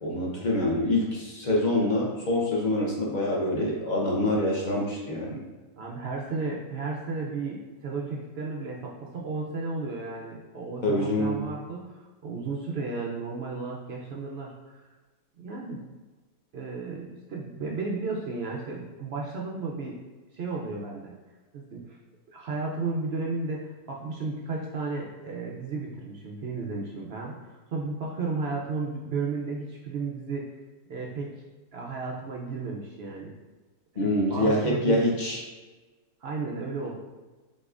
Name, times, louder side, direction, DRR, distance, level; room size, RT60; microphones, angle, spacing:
voice 1, 0.0-5.4 10.8-11.4 34.0-35.4, left 1 dB, 40° left, -3 dB, 0.7 m, -25 dB
voice 2, 5.8-14.8 15.4-15.8 16.5-20.0 20.3-21.1 21.5-22.0 22.3-27.3 27.7-30.5 30.9-31.3 31.7-33.3 34.3-35.0 36.2-36.9, right 3 dB, 70° right, -2 dB, 0.6 m, -33 dB
6.2 x 2.9 x 2.4 m, 1.2 s
omnidirectional pair, 1.7 m